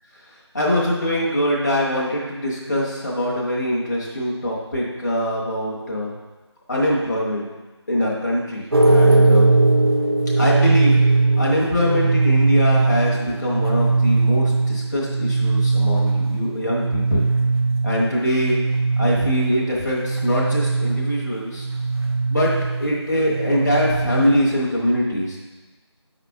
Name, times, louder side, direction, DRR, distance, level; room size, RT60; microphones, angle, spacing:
voice 1, 0.5-6.1 6.7-7.4 7.9-9.5 10.4-11.0 11.4-17.3 17.8-18.6 19.0-21.7 22.3-22.5 22.8-25.4, left 1 dB, 40° left, -4 dB, 1.2 m, -23 dB
sound 1, 8.7-24.6, right 3 dB, 60° right, 0.9 m, -20 dB
6.4 x 5.1 x 3.5 m, 1.2 s
figure-of-eight pair, 170°, 15 cm